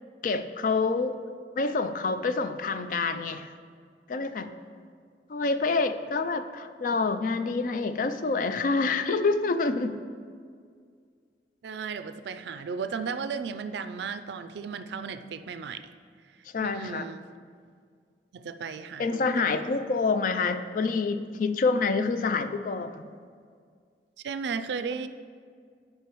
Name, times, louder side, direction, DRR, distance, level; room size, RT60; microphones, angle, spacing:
voice 1, 0.2-1.2 1.6-3.5 4.1-4.5 5.3-10.0 16.5-17.1 19.0-23.0, left 4 dB, 50° left, 10 dB, 0.3 m, -27 dB
voice 2, 11.6-15.8 16.6-17.2 18.3-19.7 24.2-25.1, right 5 dB, 75° right, 11 dB, 0.4 m, -35 dB
11.5 x 5.5 x 3.0 m, 2.1 s
head